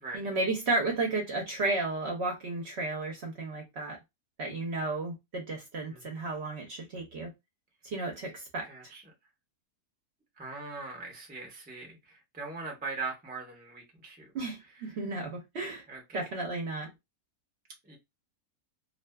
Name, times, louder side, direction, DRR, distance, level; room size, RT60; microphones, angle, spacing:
voice 1, 0.1-4.0 4.4-7.3 7.8-8.7 14.3-15.8 16.1-16.9, right 2 dB, 55° right, 0.7 m, -33 dB
voice 2, 8.7-9.0 10.4-14.3 14.9-15.0 15.9-16.2 17.9-18.0, right 4 dB, 15° right, 0.3 m, -41 dB
2.5 x 2.4 x 2.2 m
omnidirectional pair, 1.7 m